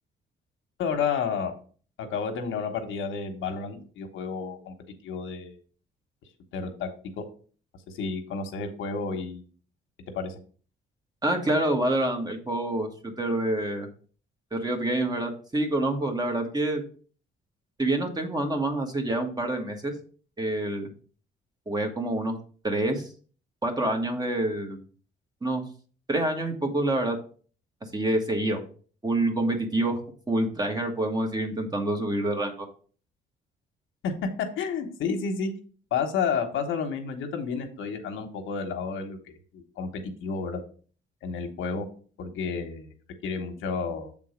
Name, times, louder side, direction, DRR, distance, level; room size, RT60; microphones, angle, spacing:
voice 1, 0.8-1.6 2.0-4.7 5.0-5.6 6.5-7.3 7.9-9.5 10.1-10.4 34.0-34.1 34.4-35.5 35.9-39.2 39.5-40.6 41.2-41.8 42.2-42.9 43.2-44.1, left 5 dB, 80° left, 5 dB, 1.2 m, -31 dB
voice 2, 11.2-13.9 14.5-16.8 17.8-19.9 20.4-20.9 21.7-22.4 22.6-23.1 23.6-24.8 25.4-25.6 26.1-27.2 27.9-28.6 29.0-30.0 30.3-32.7, right 1 dB, 20° right, 3 dB, 1.6 m, -27 dB
7.0 x 3.7 x 5.0 m, 0.41 s
cardioid pair, 90°, 20 cm